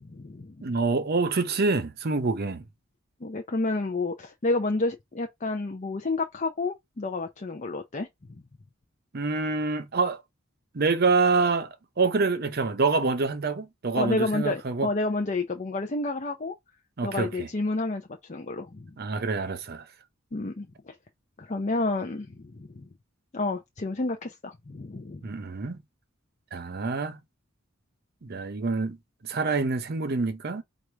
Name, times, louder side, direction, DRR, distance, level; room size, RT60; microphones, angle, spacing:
voice 1, 0.0-0.6 3.2-8.1 14.0-16.6 17.0-18.0 18.3-18.9 20.3-20.9 21.4-22.9 23.3-25.3, left 2 dB, 35° left, 0.6 m, -30 dB
voice 2, 0.6-2.7 9.1-10.2 10.7-14.9 17.0-17.5 19.0-19.8 25.2-25.8 26.5-27.2 28.2-29.0 29.2-30.6, right 4 dB, 50° right, 0.7 m, -26 dB
4.7 x 2.5 x 4.5 m
head